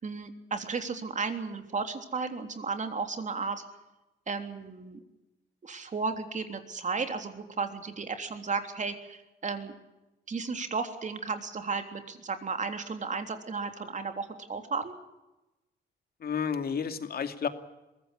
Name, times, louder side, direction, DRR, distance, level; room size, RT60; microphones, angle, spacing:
voice 1, 0.0-3.6 4.3-5.0 5.6-9.7 10.3-15.0, right 4 dB, 40° right, 7 dB, 3.5 m, -34 dB
voice 2, 16.2-17.5, left 6 dB, 50° left, 8 dB, 2.5 m, -31 dB
22.5 x 15.5 x 9.9 m, 1.0 s
cardioid pair, 90°, 20 cm